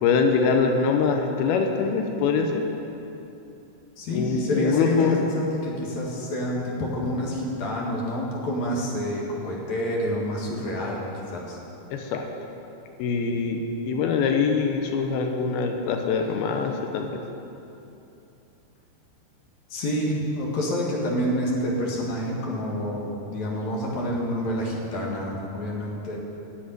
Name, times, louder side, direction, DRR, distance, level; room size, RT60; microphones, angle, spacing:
voice 1, 0.0-2.6 4.1-5.2 11.9-12.3 13.0-17.2, left 5 dB, 85° left, 4 dB, 2.8 m, -24 dB
voice 2, 4.0-11.1 11.3-11.6 19.7-26.2, equal, 55° left, -3 dB, 2.9 m, -28 dB
10.5 x 7.4 x 9.4 m, 2.9 s
omnidirectional pair, 4.3 m